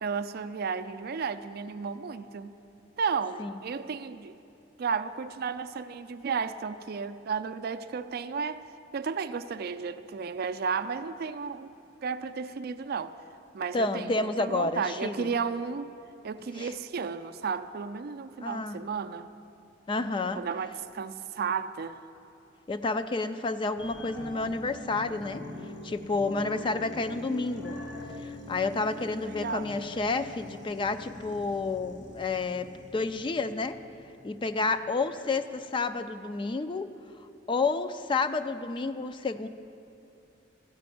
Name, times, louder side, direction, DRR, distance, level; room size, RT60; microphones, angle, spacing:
voice 1, 0.0-2.5 3.0-4.4 4.8-8.6 8.9-11.7 12.0-13.1 13.5-15.9 16.2-19.3 20.3-22.0 28.7-29.7, right 5 dB, 55° right, 11 dB, 0.4 m, -33 dB
voice 2, 13.7-15.3 16.6-16.7 18.4-18.8 19.9-20.4 22.7-25.4 25.8-27.8 28.5-32.7 32.9-33.8 34.2-36.9 37.5-39.5, left 3 dB, 25° left, 10 dB, 0.3 m, -30 dB
sound 1, 23.8-34.8 35.2-35.3, left 2 dB, 65° left, 1.2 m, -43 dB
13.5 x 5.1 x 9.1 m, 2.6 s
head